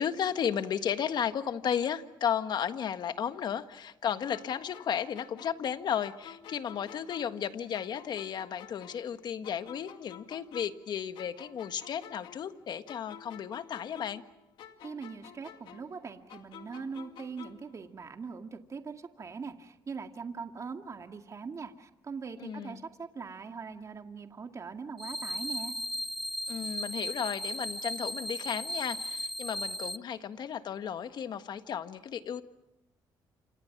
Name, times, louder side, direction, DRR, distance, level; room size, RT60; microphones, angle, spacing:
voice 1, 0.0-14.2 22.4-22.8 26.5-32.4, left 8 dB, 65° left, 10 dB, 1.5 m, -34 dB
sound 1, 4.3-7.5 7.7-10.9 11.2-14.3 14.6-17.7, left 9 dB, 80° left, 2.1 m, -51 dB
voice 2, 14.8-25.8, right 5 dB, 40° right, 5 dB, 2.1 m, -41 dB
sound 2, 25.0-30.0, equal, ahead, 0.9 m, -36 dB
28.5 x 27.5 x 6.0 m, 0.93 s
cardioid pair, 85°, 8 cm